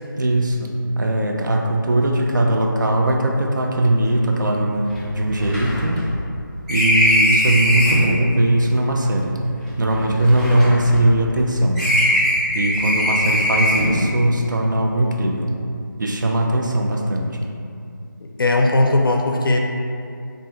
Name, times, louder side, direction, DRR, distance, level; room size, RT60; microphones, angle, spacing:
voice 1, 0.2-6.0 6.7-9.4 9.8-11.8 12.5-15.5 16.0-17.5, right 1 dB, 60° right, 1 dB, 0.4 m, -19 dB
sound 1, 4.0-4.1 4.4-4.5 4.9-8.2 9.0-11.4 11.7-14.1, equal, 20° right, 1.1 m, -21 dB
voice 2, 18.2-19.6, left 2 dB, 85° left, 1 dB, 0.4 m, -18 dB
3.2 x 2.1 x 2.9 m, 2.5 s
figure-of-eight pair, 165°, 11 cm